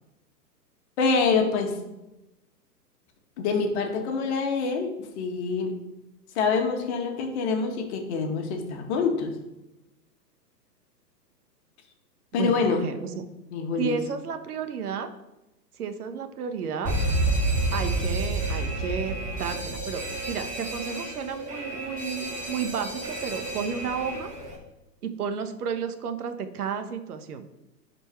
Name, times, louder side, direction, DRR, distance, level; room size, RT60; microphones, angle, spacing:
voice 1, 1.0-1.8 3.4-5.7 6.3-9.3 12.3-12.8 13.5-14.0, left 5 dB, 40° left, 3 dB, 1.8 m, -26 dB
voice 2, 12.3-13.3 13.8-15.1 15.8-16.9 17.7-20.0 20.3-24.3 25.0-27.5, right 6 dB, 60° right, 8 dB, 1.2 m, -32 dB
Alarm, 16.9-24.6, right 2 dB, 15° right, 2.6 m, -30 dB
11.0 x 4.6 x 4.6 m, 0.95 s
hypercardioid pair, 120°, 50 cm